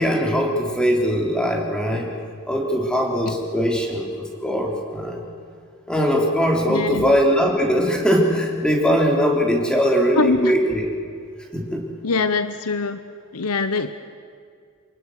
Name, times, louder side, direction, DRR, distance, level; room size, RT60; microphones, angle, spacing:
voice 1, 0.0-2.1 2.5-5.2 5.9-10.9 11.5-11.9, equal, 5° left, 0 dB, 3.5 m, -21 dB
voice 2, 6.7-7.2 10.1-10.5 12.0-13.0 13.3-13.9, left 4 dB, 80° left, 10 dB, 0.9 m, -23 dB
29.0 x 19.5 x 6.5 m, 2.2 s
head